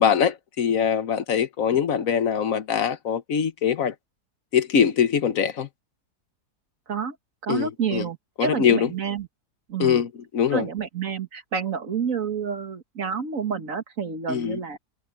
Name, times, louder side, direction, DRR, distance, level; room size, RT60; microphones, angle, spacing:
voice 1, 0.0-3.9 4.5-5.7 7.5-8.0 8.4-8.9 9.8-10.7 14.3-14.6, left 8 dB, 60° left, 1.5 m, -23 dB
voice 2, 7.4-9.3 9.7-10.0 10.5-14.8, right 6 dB, 55° right, 2.0 m, -29 dB
omnidirectional pair, 1.7 m